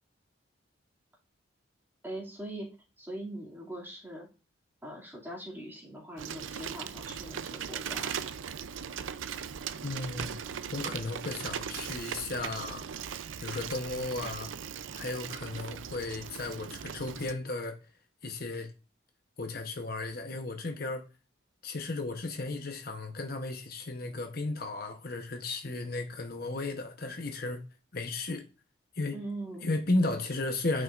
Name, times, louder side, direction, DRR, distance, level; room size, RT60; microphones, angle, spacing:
voice 1, 2.0-2.7 3.0-4.3 4.8-8.2 29.1-29.7, right 1 dB, 10° right, 2.4 m, -41 dB
Bicycle, 6.2-17.3, right 8 dB, 85° right, 0.5 m, -39 dB
voice 2, 9.8-10.4 10.7-12.9 13.4-14.5 14.9-17.8 18.2-18.7 19.4-21.1 21.6-27.6 27.9-28.4 28.9-29.2 29.6-30.8, left 2 dB, 50° left, 0.9 m, -34 dB
9.4 x 5.5 x 2.5 m
head